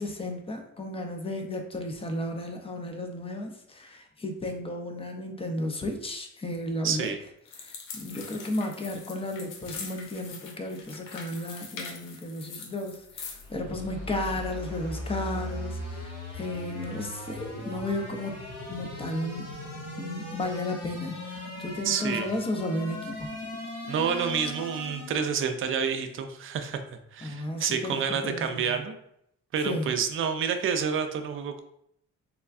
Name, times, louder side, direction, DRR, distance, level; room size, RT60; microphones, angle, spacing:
voice 1, 0.0-7.1 7.6-18.4 18.7-19.5 20.0-23.3 27.2-28.8 29.6-29.9, left 1 dB, 20° left, 4 dB, 0.5 m, -34 dB
voice 2, 6.8-7.2 21.8-22.3 23.9-26.8 27.1-29.0 29.5-31.6, right 7 dB, 45° right, 7 dB, 0.4 m, -29 dB
sound 1, 7.5-13.5, left 5 dB, 90° left, 0.6 m, -43 dB
sound 2, 13.1-25.3, left 1 dB, 55° left, 1.3 m, -38 dB
3.5 x 2.2 x 2.4 m, 0.73 s
cardioid pair, 90°, 30 cm